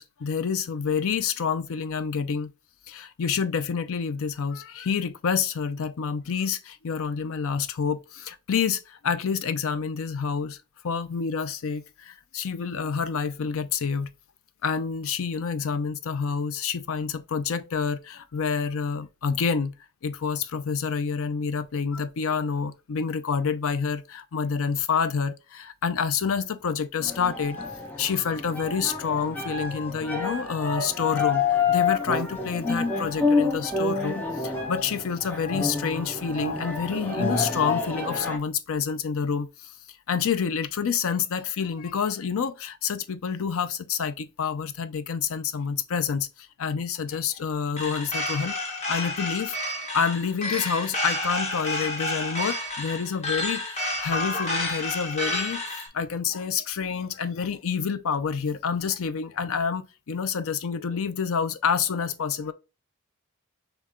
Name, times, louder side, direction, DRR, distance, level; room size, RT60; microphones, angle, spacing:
voice 1, 0.0-2.5 2.9-10.6 10.8-14.1 14.6-19.7 20.0-27.6 28.0-39.7 40.1-55.6 55.9-62.5, left 6 dB, 65° left, 0.5 m, -28 dB
sound 1, 27.0-38.4, left 4 dB, 10° left, 1.0 m, -28 dB
sound 2, 47.8-55.9, left 1 dB, 30° left, 1.2 m, -30 dB
6.5 x 2.3 x 3.5 m
head